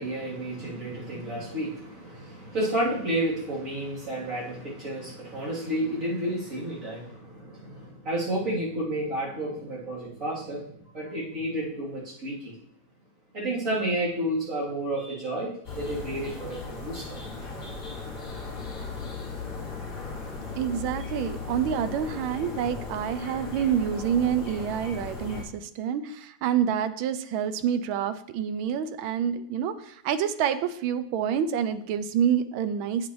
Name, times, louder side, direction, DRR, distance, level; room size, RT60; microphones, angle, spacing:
voice 1, 0.0-12.5 13.3-17.1, right 1 dB, 35° right, -8 dB, 3.6 m, -31 dB
sound 1, 15.6-25.4, left 4 dB, 40° left, 2.3 m, -37 dB
voice 2, 20.6-33.1, right 8 dB, 80° right, 12 dB, 1.4 m, -27 dB
8.4 x 8.1 x 3.1 m, 0.68 s
omnidirectional pair, 2.3 m